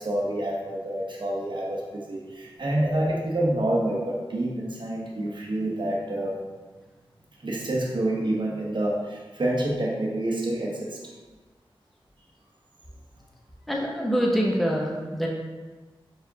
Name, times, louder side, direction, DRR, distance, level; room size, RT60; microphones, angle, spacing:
voice 1, 0.0-6.4 7.4-11.0, right 1 dB, 55° right, -3 dB, 0.9 m, -27 dB
voice 2, 13.7-15.3, equal, ahead, -2 dB, 0.7 m, -25 dB
4.5 x 3.4 x 2.7 m, 1.3 s
wide cardioid pair, 55°, 9 cm